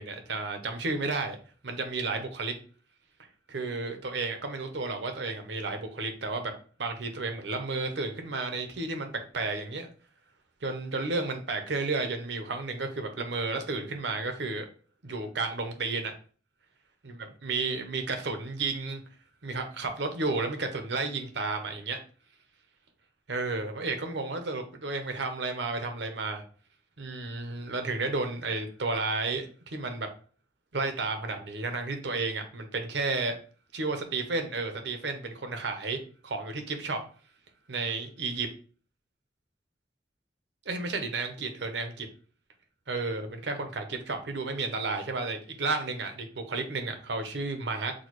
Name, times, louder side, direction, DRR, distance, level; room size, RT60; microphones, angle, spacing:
voice 1, 0.0-1.4 1.6-2.5 3.5-6.5 6.8-9.9 10.6-14.7 15.0-16.1 17.4-19.0 19.4-22.0 23.3-26.4 27.0-30.1 30.7-33.4 33.7-37.0 37.7-38.5 40.7-42.1 42.9-47.9, right 3 dB, 80° right, 5 dB, 0.8 m, -32 dB
6.2 x 2.3 x 3.1 m, 0.40 s
head